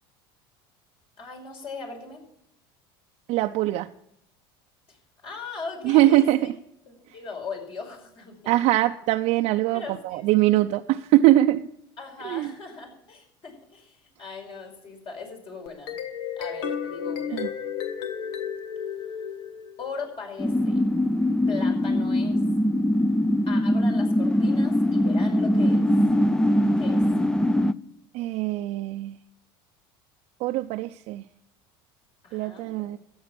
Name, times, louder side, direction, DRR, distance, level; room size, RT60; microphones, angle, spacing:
voice 1, 1.2-2.2 4.9-5.0 5.2-6.5 6.9-8.5 9.7-10.3 12.0-16.0 16.4-17.6 19.8-20.8 21.5-22.4 23.5-25.9 26.8-27.0 32.2-32.9, left 4 dB, 45° left, 2 dB, 5.3 m, -39 dB
voice 2, 3.3-3.9 5.8-6.5 8.5-11.7 12.2-12.5 17.3-17.5 28.1-29.2 30.4-31.2 32.3-33.0, right 15 dB, 60° right, 5 dB, 0.6 m, -22 dB
sound 1, 15.7-20.0, left 8 dB, 80° left, 1.4 m, -33 dB
sound 2, 20.4-27.7, left 1 dB, 5° left, 0.5 m, -22 dB
13.5 x 9.4 x 6.0 m, 0.77 s
supercardioid pair, 100°, 12 cm